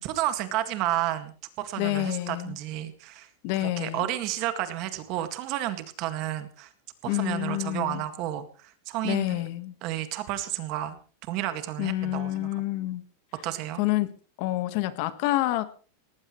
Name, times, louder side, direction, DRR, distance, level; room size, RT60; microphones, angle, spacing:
voice 1, 0.0-3.3 3.6-6.7 7.0-9.4 9.8-11.0 11.3-12.5 13.4-13.8, right 13 dB, 35° right, 9 dB, 1.9 m, -31 dB
voice 2, 1.8-2.6 3.4-4.1 7.1-8.0 9.0-9.7 11.8-13.0 13.8-14.1 14.4-15.7, left 16 dB, 40° left, 12 dB, 1.4 m, -28 dB
19.0 x 18.5 x 3.2 m, 0.40 s
supercardioid pair, 175°, 0 cm